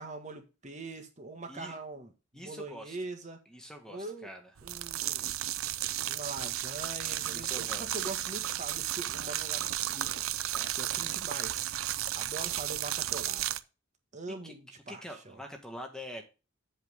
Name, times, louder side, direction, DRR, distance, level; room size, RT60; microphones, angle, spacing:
voice 1, 0.0-3.4 3.9-4.3 4.6-5.3 6.1-10.2 10.7-11.9 12.1-13.6 14.1-15.4, right 3 dB, 35° right, 5 dB, 1.6 m, -43 dB
voice 2, 2.3-3.0 3.5-4.5 7.3-8.0 10.5-10.7 14.4-14.5 14.9-16.2, equal, 5° left, 3 dB, 1.4 m, -45 dB
sound 1, 4.6-13.6, right 13 dB, 80° right, 0.6 m, -33 dB
8.1 x 7.5 x 3.6 m, 0.30 s
head